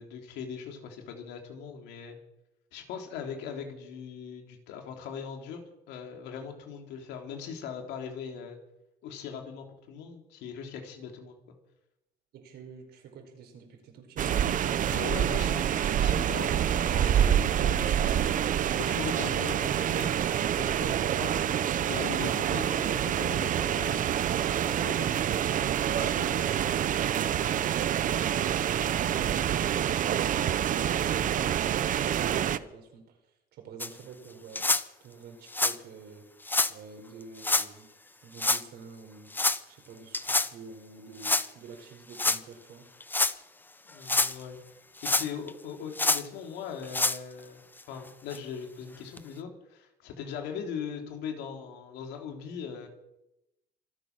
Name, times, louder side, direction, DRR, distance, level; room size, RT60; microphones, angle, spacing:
voice 1, 0.0-2.2 2.7-5.6 5.9-8.6 9.0-11.4 14.8-18.3 18.7-20.1 20.5-21.5 21.9-24.1 24.6-25.1 25.9-26.7 43.9-44.6 45.0-47.6 47.9-52.9, left 7 dB, 85° left, 3 dB, 3.5 m, -40 dB
voice 2, 12.3-14.3 26.0-26.5 27.3-33.2 33.5-34.7 35.0-36.3 36.7-37.9 38.2-39.3 39.7-42.9, right 5 dB, 75° right, 4 dB, 4.9 m, -47 dB
sound 1, 14.2-32.6, right 10 dB, 50° right, 0.8 m, -27 dB
sound 2, 33.8-33.9 34.6-34.8 35.5-35.8 36.5-36.7 37.4-37.7 38.4-38.6 39.3-39.6 40.1-40.5 41.2-41.5 42.1-42.4 43.0-43.3 43.9-44.4 45.0-45.5 46.0-46.2 46.8-47.2 47.8-47.9 48.3-48.4 49.2-49.3, left 2 dB, 10° left, 0.7 m, -26 dB
25.5 x 8.8 x 6.1 m, 0.87 s
cardioid pair, 110°, 17 cm